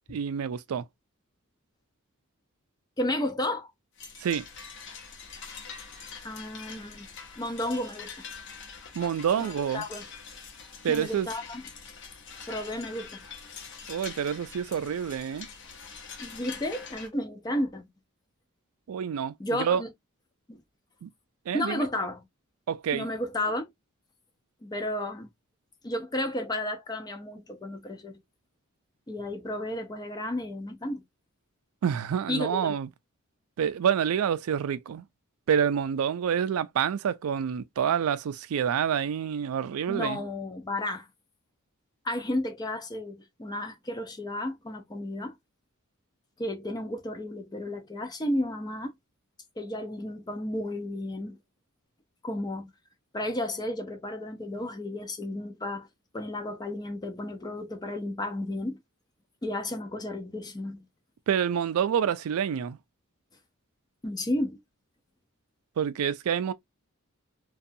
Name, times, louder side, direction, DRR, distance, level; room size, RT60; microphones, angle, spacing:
voice 1, 0.1-0.8 4.2-4.5 9.0-9.8 10.8-11.3 13.9-15.5 18.9-19.8 21.0-21.1 21.5-21.9 22.7-23.1 31.8-32.9 33.6-35.0 35.5-40.2 61.3-62.8 65.8-66.5, right 8 dB, 80° right, 0.3 m, -27 dB
voice 2, 3.0-3.7 6.2-7.1 7.4-8.3 9.4-10.0 10.9-11.6 12.5-13.3 16.2-17.9 19.4-19.9 20.5-20.6 21.5-22.2 22.9-23.6 24.6-25.3 25.8-28.2 29.1-31.0 32.3-32.7 39.9-41.1 42.0-45.4 46.4-48.9 49.6-51.4 52.2-52.7 53.1-55.9 56.1-58.8 59.4-60.8 64.0-64.6, left 1 dB, 20° left, 0.4 m, -33 dB
sound 1, 4.0-17.1, left 5 dB, 55° left, 0.7 m, -44 dB
2.6 x 2.3 x 2.5 m
head